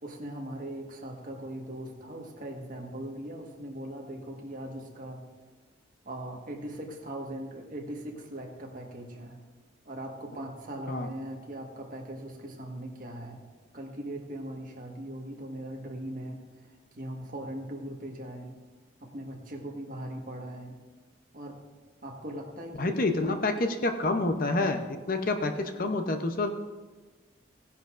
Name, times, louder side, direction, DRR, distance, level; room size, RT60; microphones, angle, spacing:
voice 1, 0.0-5.2 6.0-9.4 9.8-13.4 13.7-16.4 16.9-18.6 19.0-20.8 21.3-21.6 22.0-23.4, right 1 dB, 40° right, 0 dB, 1.5 m, -40 dB
voice 2, 22.8-26.5, left 2 dB, 45° left, 6 dB, 0.7 m, -28 dB
16.0 x 10.5 x 2.5 m, 1.3 s
head